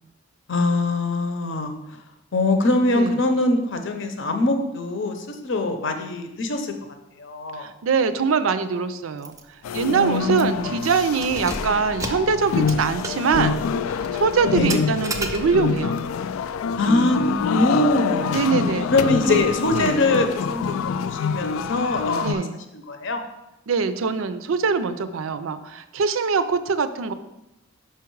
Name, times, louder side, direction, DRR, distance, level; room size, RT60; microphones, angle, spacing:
voice 1, 0.5-1.8 2.3-6.7 7.2-7.6 9.9-10.7 14.5-14.8 16.8-18.4 18.9-22.4 22.7-23.2, left 2 dB, 65° left, 6 dB, 0.8 m, -23 dB
voice 2, 7.6-9.4 9.7-13.7 14.1-16.0 18.3-18.9 19.2-19.4 19.7-20.0 22.2-22.6 23.7-27.1, right 5 dB, 80° right, 12 dB, 0.5 m, -23 dB
Keys jangling, 9.2-9.4 9.7-9.8 10.3-10.7 11.1-15.8, right 2 dB, 15° right, 0.5 m, -34 dB
sound 1, 9.6-22.3, left 6 dB, 85° left, 0.3 m, -26 dB
5.7 x 4.8 x 4.6 m, 0.92 s
head